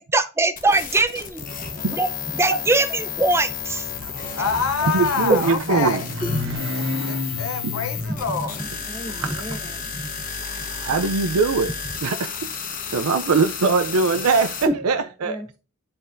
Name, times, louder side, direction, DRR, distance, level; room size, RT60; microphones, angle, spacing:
voice 1, 0.0-1.4 1.7-3.9 4.2-4.3 5.3-5.4 6.2-7.2 8.6-8.7 9.2-9.3 10.4-10.9 14.7-14.8, right 2 dB, 10° right, 0.5 m, -23 dB
sound 1, 0.6-14.7, left 7 dB, 40° left, 0.9 m, -32 dB
Motorcycle, 3.3-11.4, left 2 dB, 60° right, 1.5 m, -33 dB
voice 2, 4.4-6.1 6.8-8.6, left 5 dB, 75° left, 0.7 m, -26 dB
voice 3, 4.9-6.0 7.6-7.8 9.2-9.3 10.8-11.7 12.0-12.5 12.9-15.4, right 4 dB, 85° right, 0.5 m, -21 dB
voice 4, 8.8-9.9 14.7-15.6, equal, 10° left, 0.9 m, -38 dB
10.5 x 4.0 x 2.5 m
head